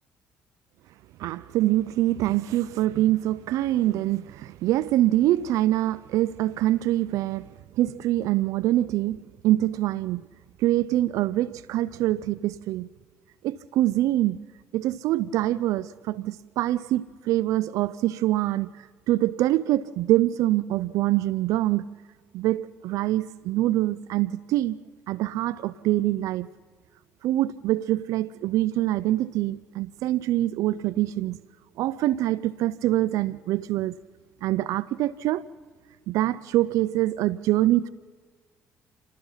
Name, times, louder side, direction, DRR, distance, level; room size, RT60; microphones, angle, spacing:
voice 1, 1.2-7.5 7.8-10.2 10.6-12.9 13.4-14.4 14.7-21.9 22.3-24.8 25.1-26.5 27.2-31.4 31.8-34.0 34.4-35.4 36.1-37.9, right 15 dB, 75° right, 0.5 m, -24 dB
27.5 x 18.5 x 5.7 m
supercardioid pair, 65°, 6 cm